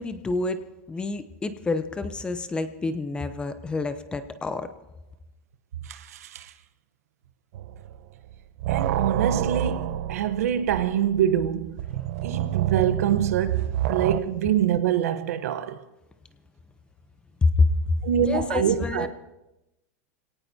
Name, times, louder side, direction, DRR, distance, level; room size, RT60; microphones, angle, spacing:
voice 1, 0.0-4.7 17.4-19.1, left 3 dB, 10° left, 0.8 m, -27 dB
voice 2, 5.9-6.5 8.7-11.8 12.2-15.8 18.0-19.1, right 9 dB, 85° right, 1.1 m, -25 dB
sound 1, 7.5-8.0 8.3-14.2, right 11 dB, 60° right, 0.7 m, -28 dB
25.5 x 18.0 x 2.8 m
supercardioid pair, 150°, 8 cm